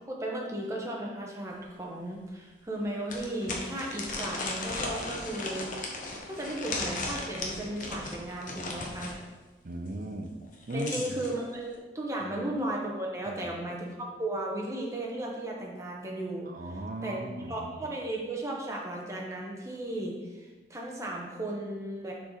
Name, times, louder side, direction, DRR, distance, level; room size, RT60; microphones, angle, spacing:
voice 1, 0.1-5.9 6.2-9.1 10.7-16.5 17.0-17.2 17.5-22.1, right 1 dB, 15° right, -2 dB, 1.1 m, -35 dB
sound 1, 1.6-1.7 2.1-2.2 3.1-9.2 10.4-11.3, left 2 dB, 45° left, 1.0 m, -36 dB
voice 2, 9.6-10.4 10.7-11.1 12.2-12.5 13.3-13.6 16.4-18.0, right 1 dB, 50° right, 5 dB, 0.6 m, -38 dB
6.7 x 4.9 x 3.9 m, 1.2 s
head